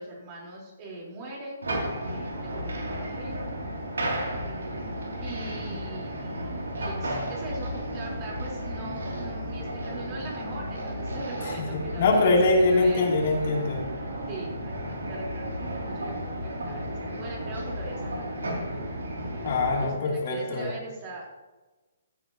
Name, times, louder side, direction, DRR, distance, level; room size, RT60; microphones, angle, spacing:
voice 1, 0.0-3.5 5.2-13.1 14.3-18.6 19.8-21.3, right 2 dB, 35° right, -2 dB, 3.9 m, -41 dB
sound 1, 1.6-19.9, equal, 80° right, 2.8 m, -33 dB
voice 2, 11.7-13.8 19.4-20.7, left 2 dB, 55° left, -1 dB, 2.9 m, -23 dB
15.5 x 8.9 x 2.9 m, 1.2 s
hypercardioid pair, 135°, 0 cm